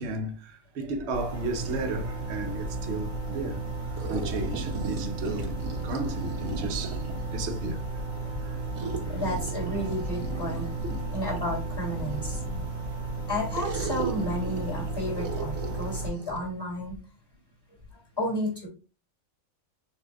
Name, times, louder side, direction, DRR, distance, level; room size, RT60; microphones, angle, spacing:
voice 1, 0.0-3.6 4.1-7.0 7.3-7.8 8.2-8.6, right 2 dB, 60° right, 1.0 m, -34 dB
sound 1, 1.1-16.1, right 2 dB, 45° left, 2.8 m, -34 dB
sound 2, 4.0-7.3 8.7-12.6 13.5-16.5, right 4 dB, 80° right, 1.3 m, -37 dB
voice 2, 9.1-12.4 13.3-17.0 18.2-18.7, left 1 dB, 15° left, 2.4 m, -32 dB
6.6 x 2.7 x 2.2 m
omnidirectional pair, 1.5 m